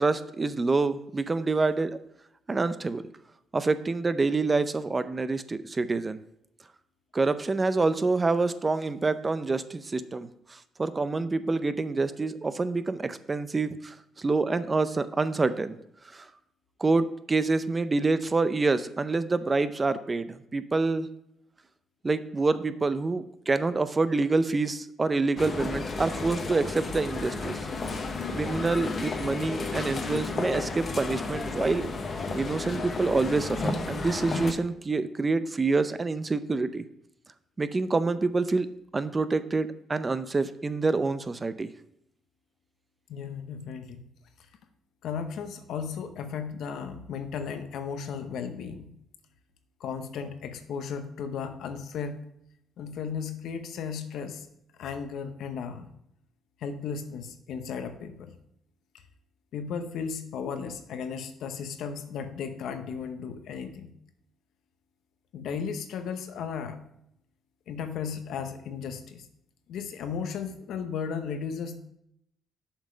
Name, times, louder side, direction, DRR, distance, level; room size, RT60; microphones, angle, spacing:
voice 1, 0.0-2.0 2.5-3.0 3.5-6.2 7.1-15.8 16.1-16.2 16.8-21.1 22.0-27.6 28.3-31.9 32.3-36.8 37.6-38.7 38.9-41.7, right 3 dB, 25° right, 12 dB, 0.5 m, -27 dB
sound 1, 25.4-34.5, left 3 dB, 45° left, 1.0 m, -32 dB
voice 2, 43.1-44.0 45.0-48.9 49.8-52.2 52.8-54.5 54.8-55.8 56.6-58.3 59.5-63.9 65.3-66.8 67.7-69.3 69.7-71.8, left 6 dB, 80° left, 8 dB, 0.9 m, -35 dB
7.3 x 5.4 x 5.0 m, 0.77 s
cardioid pair, 90°, 0 cm